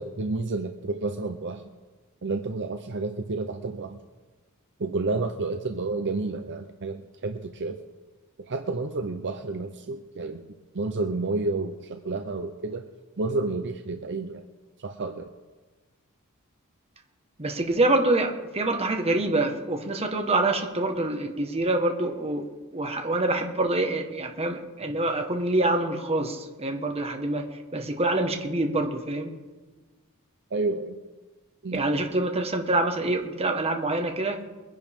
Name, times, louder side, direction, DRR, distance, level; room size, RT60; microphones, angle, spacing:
voice 1, 0.0-1.7 2.2-4.0 4.8-7.8 8.4-10.5 10.7-12.8 13.2-14.5 14.8-15.3 30.5-31.0 31.6-31.8, right 3 dB, 55° right, 6 dB, 0.7 m, -30 dB
voice 2, 17.4-22.5 22.7-29.3 31.7-34.4, right 2 dB, 30° right, 3 dB, 1.5 m, -26 dB
22.5 x 10.5 x 3.6 m, 1.3 s
head